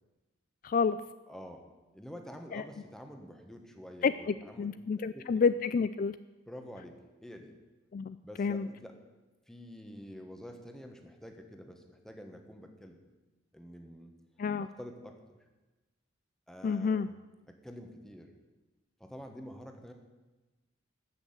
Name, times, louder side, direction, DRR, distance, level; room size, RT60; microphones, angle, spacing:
voice 1, 0.6-1.0 2.5-2.6 4.0-6.2 7.9-8.7 14.4-14.7 16.6-17.1, left 5 dB, 45° left, 13 dB, 0.3 m, -29 dB
voice 2, 1.3-1.7 1.9-4.7 5.0-5.4 6.5-7.5 8.2-9.0 9.5-13.0 13.5-14.1 14.6-15.4 16.5-17.2 17.5-18.3 19.0-19.9, equal, 5° left, 4 dB, 1.3 m, -48 dB
14.0 x 6.3 x 8.8 m, 1.2 s
head